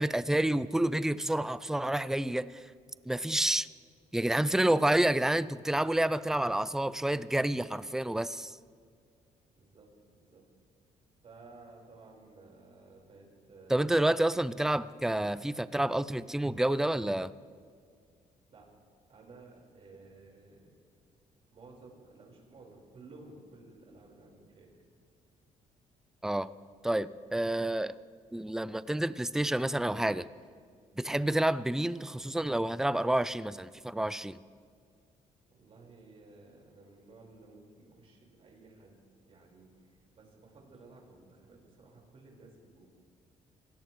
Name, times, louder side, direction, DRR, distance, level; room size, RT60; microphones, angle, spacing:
voice 1, 0.0-2.7 3.1-3.7 4.1-8.6 13.7-17.3 26.2-26.5 26.8-27.9 28.3-30.3 31.0-34.4, right 1 dB, 5° right, 16 dB, 0.4 m, -29 dB
voice 2, 9.5-10.4 11.2-13.9 18.5-18.7 19.1-20.7 21.5-24.7 35.5-39.0 39.3-42.9, right 3 dB, 45° right, -1 dB, 4.7 m, -55 dB
26.0 x 17.0 x 3.2 m, 2.1 s
cardioid pair, 110°, 13 cm